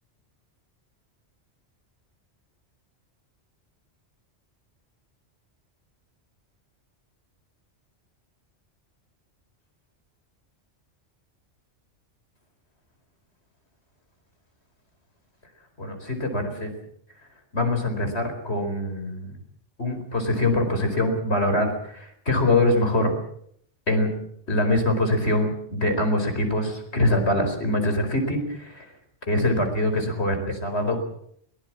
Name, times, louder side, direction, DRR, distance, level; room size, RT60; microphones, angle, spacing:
voice 1, 15.8-16.7 17.5-19.3 19.8-23.1 23.9-24.1 24.5-28.9 29.3-31.1, left 1 dB, 65° left, 6 dB, 4.9 m, -24 dB
22.5 x 18.0 x 7.5 m, 0.67 s
omnidirectional pair, 1.2 m